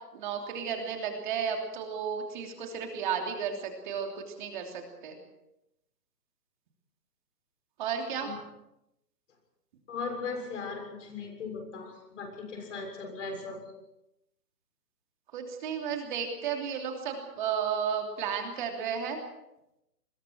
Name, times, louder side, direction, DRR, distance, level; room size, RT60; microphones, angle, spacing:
voice 1, 0.1-5.2 7.8-8.3 15.3-19.2, right 7 dB, 30° right, 3 dB, 3.2 m, -33 dB
voice 2, 9.9-13.6, left 4 dB, 45° left, 3 dB, 6.9 m, -38 dB
27.5 x 22.0 x 4.6 m, 0.86 s
hypercardioid pair, 160°, 49 cm